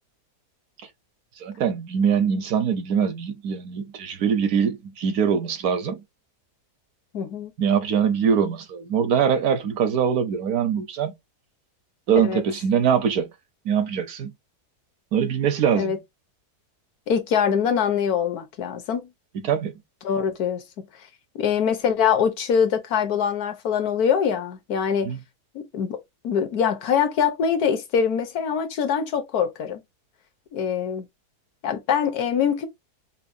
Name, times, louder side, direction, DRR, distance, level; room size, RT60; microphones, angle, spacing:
voice 1, 1.4-6.0 7.6-11.1 12.1-13.3 13.6-14.3 15.1-16.0 19.4-19.7 25.0-25.2, right 7 dB, 70° right, 1.2 m, -23 dB
voice 2, 7.1-7.5 12.2-12.4 15.7-16.0 17.1-19.1 20.0-20.6 21.3-25.1 25.5-26.0 26.2-29.8 30.5-31.1 31.6-32.7, left 7 dB, 70° left, 1.3 m, -23 dB
5.8 x 2.2 x 2.6 m
omnidirectional pair, 1.7 m